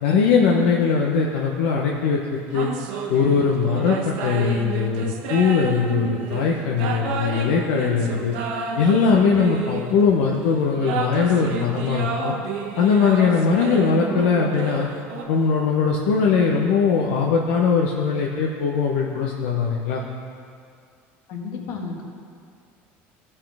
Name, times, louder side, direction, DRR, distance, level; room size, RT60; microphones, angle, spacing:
voice 1, 0.0-2.7 3.1-8.3 8.8-12.3 12.8-14.9 15.3-20.0, left 5 dB, 80° left, -2 dB, 0.9 m, -20 dB
sound 1, 2.5-10.1 10.7-15.2, right 5 dB, 75° right, 1.0 m, -30 dB
voice 2, 21.3-22.0, left 4 dB, 60° left, 0 dB, 1.6 m, -32 dB
14.0 x 5.6 x 3.5 m, 2.3 s
supercardioid pair, 125°, 6 cm